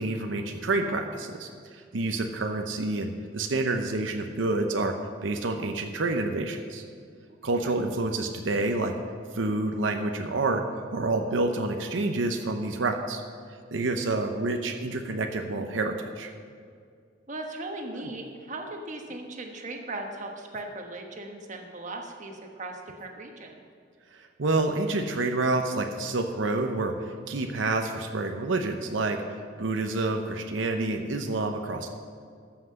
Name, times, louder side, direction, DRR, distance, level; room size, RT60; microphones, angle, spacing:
voice 1, 0.0-4.9 5.2-6.8 7.4-8.9 9.3-13.2 13.7-16.3 24.2-31.9, right 2 dB, 85° right, 4 dB, 0.8 m, -28 dB
voice 2, 7.3-7.7 17.3-23.7, right 2 dB, 40° right, 3 dB, 1.2 m, -38 dB
13.5 x 5.9 x 6.6 m, 2.2 s
head